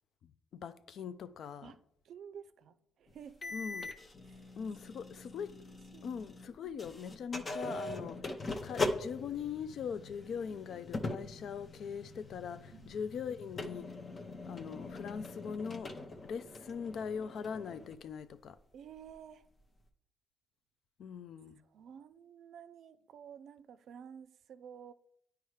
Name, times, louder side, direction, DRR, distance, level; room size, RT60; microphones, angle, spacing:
voice 1, 0.2-1.7 3.5-3.9 4.6-5.6 6.0-14.0 14.5-15.9 16.2-18.6 21.0-21.6, left 7 dB, 65° left, 0.4 m, -41 dB
voice 2, 1.6-3.6 4.2-4.5 5.1-5.2 5.9-6.1 12.7-12.9 18.7-19.5 21.6-24.9, right 8 dB, 70° right, 0.4 m, -52 dB
sound 1, 3.4-6.5 6.8-17.9, left 2 dB, 30° left, 0.7 m, -42 dB
9.3 x 4.6 x 3.2 m
cardioid pair, 90°, 0 cm